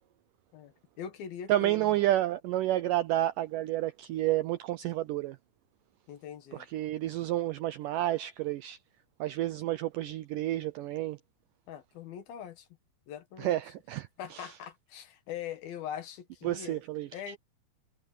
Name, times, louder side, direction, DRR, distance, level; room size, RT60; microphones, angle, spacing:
voice 1, 0.5-2.0 6.1-6.7 11.7-12.7 13.1-13.6 14.2-16.8 17.1-17.4, left 9 dB, 70° left, 3.5 m, -42 dB
voice 2, 1.5-5.4 6.5-8.8 9.2-11.2 13.4-14.5 16.4-17.4, right 14 dB, 80° right, 2.0 m, -30 dB
omnidirectional pair, 4.4 m